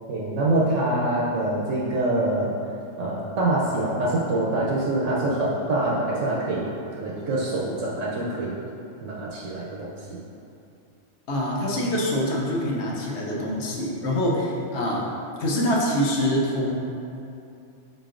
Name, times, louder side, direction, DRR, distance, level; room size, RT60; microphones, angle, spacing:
voice 1, 0.1-2.6 3.0-8.6 9.0-10.2, right 2 dB, 75° right, -5 dB, 0.9 m, -25 dB
voice 2, 11.3-15.1 15.4-16.7, equal, 65° left, -3 dB, 0.9 m, -25 dB
5.1 x 3.9 x 2.5 m, 2.7 s
omnidirectional pair, 1.3 m